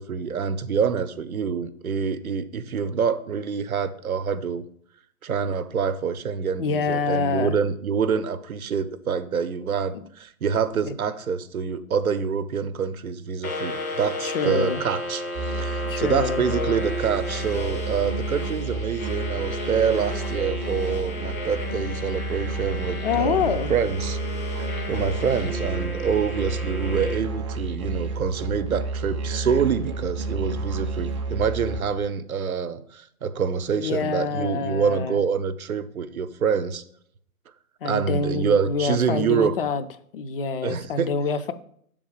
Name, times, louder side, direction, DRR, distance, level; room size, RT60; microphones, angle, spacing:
voice 1, 0.0-4.6 5.2-24.2 24.5-36.8 37.8-39.5 40.6-41.1, right 6 dB, 80° right, 12 dB, 0.6 m, -26 dB
voice 2, 6.6-7.5 10.9-11.0 14.2-14.8 15.9-16.4 23.0-23.7 33.7-35.2 37.8-39.8 40.1-41.5, left 5 dB, 45° left, 12 dB, 0.4 m, -26 dB
sound 1, 13.4-27.2, left 2 dB, 70° left, 1.7 m, -33 dB
Musical instrument, 15.3-31.8, right 3 dB, 25° right, 0.4 m, -31 dB
7.0 x 3.7 x 4.8 m, 0.66 s
figure-of-eight pair, 120°, 43 cm